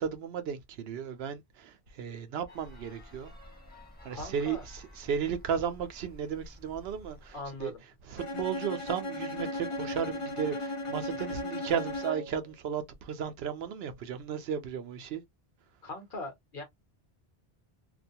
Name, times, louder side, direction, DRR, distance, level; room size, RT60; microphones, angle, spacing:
voice 1, 0.0-3.3 4.0-7.7 8.0-15.2, right 7 dB, 75° right, 0.8 m, -34 dB
sound 1, 2.5-7.8, left 1 dB, 10° left, 1.0 m, -52 dB
voice 2, 4.1-4.6 7.3-7.8 15.8-16.6, left 2 dB, 55° left, 1.1 m, -40 dB
Bowed string instrument, 8.2-12.4, left 1 dB, 40° left, 0.6 m, -36 dB
2.4 x 2.2 x 2.7 m
omnidirectional pair, 1.0 m